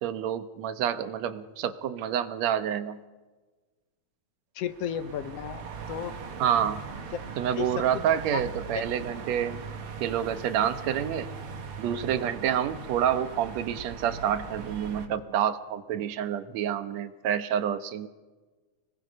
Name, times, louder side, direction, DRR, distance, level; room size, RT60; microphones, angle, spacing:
voice 1, 0.0-3.0 6.4-6.8 7.4-9.6 10.0-11.3 11.8-18.1, right 9 dB, 70° right, 11 dB, 2.1 m, -28 dB
voice 2, 4.5-6.1 7.1-7.2 7.6-8.0 8.3-8.4 8.7-8.8, left 9 dB, 70° left, 12 dB, 1.7 m, -33 dB
sound 1, 4.6-15.1, right 5 dB, 55° right, 2.2 m, -40 dB
29.5 x 20.5 x 5.4 m, 1.3 s
omnidirectional pair, 3.4 m